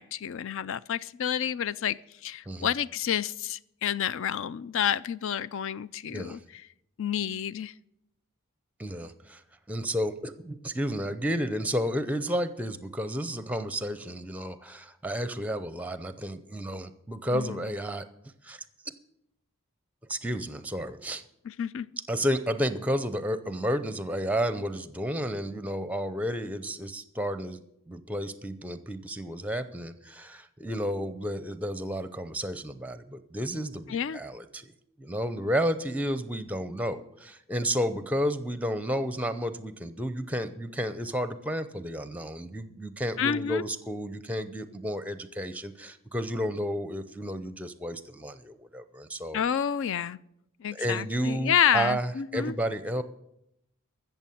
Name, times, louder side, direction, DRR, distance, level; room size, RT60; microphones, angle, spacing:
voice 1, 0.0-6.6 7.0-7.7 17.3-17.6 21.4-21.9 33.9-34.2 43.2-43.6 49.3-50.2 50.6-52.5, left 9 dB, 60° left, 19 dB, 0.4 m, -29 dB
voice 2, 8.8-9.4 9.7-18.1 18.4-18.6 20.1-21.2 22.1-34.7 35.0-49.4 50.7-53.0, equal, 5° right, 12 dB, 0.6 m, -32 dB
14.0 x 7.2 x 7.7 m, 0.80 s
head